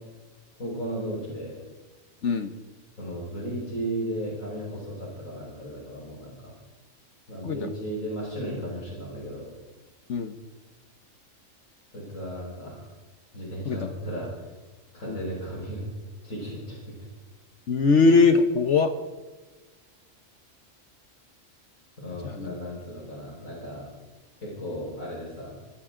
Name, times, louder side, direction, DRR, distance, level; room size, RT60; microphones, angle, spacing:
voice 1, 0.6-1.6 3.0-6.5 7.3-9.5 11.9-12.9 13.3-14.5 14.9-15.8 16.2-17.1 22.0-23.9 24.4-25.6, right 1 dB, 90° left, -4 dB, 5.5 m, -35 dB
voice 2, 17.7-18.9 22.2-22.5, left 4 dB, 60° left, 7 dB, 1.3 m, -21 dB
26.0 x 14.0 x 3.8 m, 1.3 s
omnidirectional pair, 1.4 m